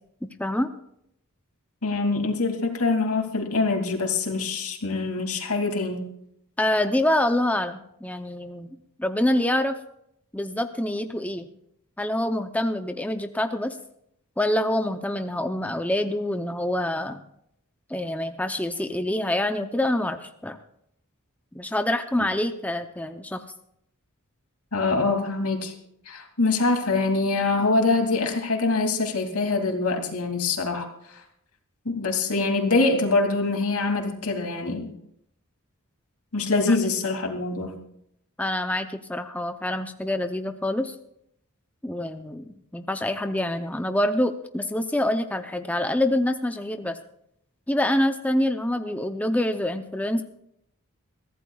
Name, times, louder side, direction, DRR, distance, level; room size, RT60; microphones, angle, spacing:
voice 1, 0.4-0.7 6.6-8.7 9.0-9.8 10.3-11.5 12.0-13.8 14.4-17.2 17.9-20.6 21.5-23.4 36.7-36.8 38.4-40.9 41.8-47.0 47.7-50.2, left 1 dB, 5° left, 7 dB, 0.6 m, -26 dB
voice 2, 1.8-6.1 24.7-25.7 26.1-30.9 31.8-34.9 36.3-37.8, left 3 dB, 85° left, 3 dB, 2.6 m, -24 dB
22.5 x 15.5 x 2.3 m, 0.73 s
head